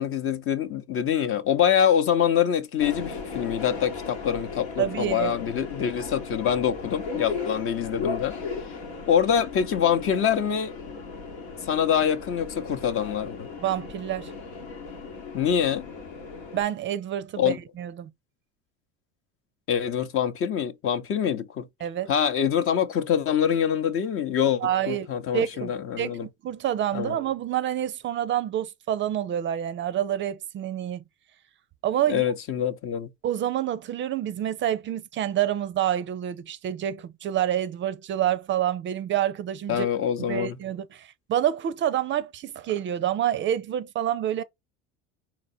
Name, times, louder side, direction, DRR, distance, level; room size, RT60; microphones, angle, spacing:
voice 1, 0.0-8.3 9.1-10.7 11.6-13.5 15.3-15.9 17.4-17.6 19.7-21.7 22.1-26.3 26.9-27.2 32.1-33.1 39.7-40.6, left 8 dB, 45° left, 0.8 m, -25 dB
Subway metro underground, 2.8-16.6, left 5 dB, 85° left, 1.3 m, -36 dB
voice 2, 4.8-5.3 13.6-14.3 16.5-18.1 21.8-22.1 24.6-25.1 25.3-31.0 31.8-32.2 33.2-39.9 40.3-44.4, right 11 dB, 40° right, 0.5 m, -27 dB
4.3 x 2.9 x 4.2 m
hypercardioid pair, 85°, 31 cm